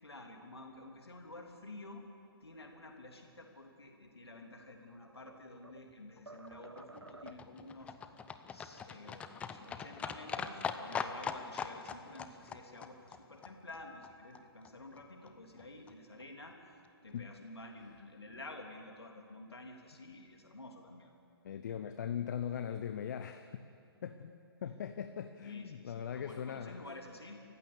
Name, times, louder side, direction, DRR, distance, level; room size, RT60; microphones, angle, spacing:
voice 1, 0.0-2.0 2.4-8.2 8.5-16.6 17.0-21.1 25.4-27.4, left 2 dB, 75° left, 2 dB, 3.2 m, -51 dB
sound 1, 4.6-5.9 6.3-7.7, right 2 dB, 90° right, 0.8 m, -53 dB
Livestock farm animals working animals, 6.2-14.4 14.6-14.7 15.0-15.1 15.3-15.4 15.6-15.7 15.9-16.0 16.2-16.3 16.5-16.6 16.8-16.9, left 6 dB, 10° left, 0.6 m, -42 dB
voice 2, 21.4-23.6 24.0-26.8, left 8 dB, 45° left, 9 dB, 0.9 m, -40 dB
28.5 x 15.0 x 7.2 m, 2.6 s
figure-of-eight pair, 130°, 13 cm